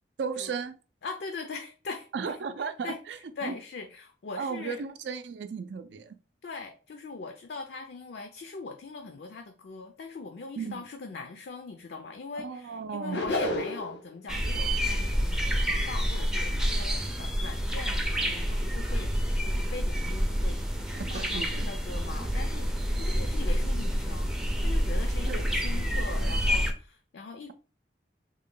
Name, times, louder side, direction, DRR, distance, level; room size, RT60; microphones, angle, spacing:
voice 1, 0.2-0.8 2.1-3.6 4.4-6.2 10.6-10.8 12.3-13.4 21.1-21.7 25.3-25.9, right 5 dB, 75° right, 0.4 m, -35 dB
voice 2, 1.0-2.4 2.8-4.8 6.4-19.1 19.4-20.6 21.1-27.5, left 3 dB, 65° left, 0.4 m, -41 dB
sound 1, 13.1-14.0, left 1 dB, 85° left, 0.9 m, -29 dB
sound 2, 14.3-26.7, equal, 5° right, 0.4 m, -28 dB
3.6 x 2.2 x 3.7 m
head